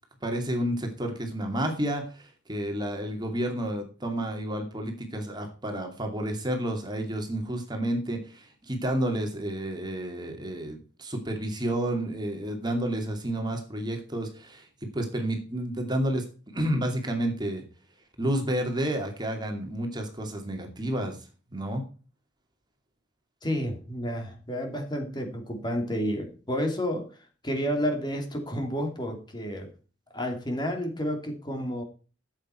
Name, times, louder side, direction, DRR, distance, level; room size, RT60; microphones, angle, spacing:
voice 1, 0.2-17.6 18.2-21.2 21.5-21.8, right 1 dB, 25° right, 4 dB, 2.6 m, -30 dB
voice 2, 23.4-27.1 27.4-29.7 30.1-31.8, equal, 25° left, 4 dB, 2.7 m, -30 dB
14.0 x 8.1 x 4.5 m, 0.37 s
head